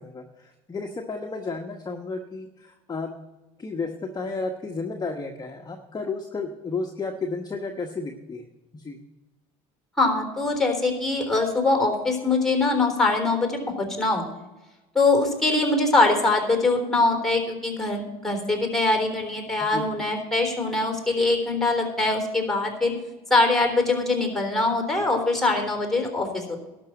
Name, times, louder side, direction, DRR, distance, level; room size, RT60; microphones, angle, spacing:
voice 1, 0.0-3.1 3.6-8.4 8.7-9.0 19.7-19.9, left 3 dB, 20° left, 4 dB, 1.1 m, -32 dB
voice 2, 10.0-14.2 14.9-22.9 23.3-26.7, left 2 dB, ahead, 3 dB, 3.6 m, -23 dB
12.0 x 6.2 x 8.9 m, 1.1 s
supercardioid pair, 80°, 18 cm